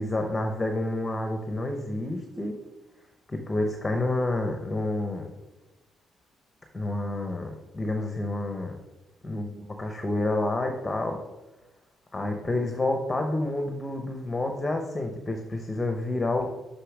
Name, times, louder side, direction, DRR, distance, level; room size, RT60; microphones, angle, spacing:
voice 1, 0.0-2.6 3.3-5.3 6.7-8.8 9.2-11.2 12.1-16.5, left 2 dB, 10° left, 5 dB, 0.8 m, -29 dB
6.8 x 5.6 x 6.0 m, 1.1 s
cardioid pair, 170°, 0 cm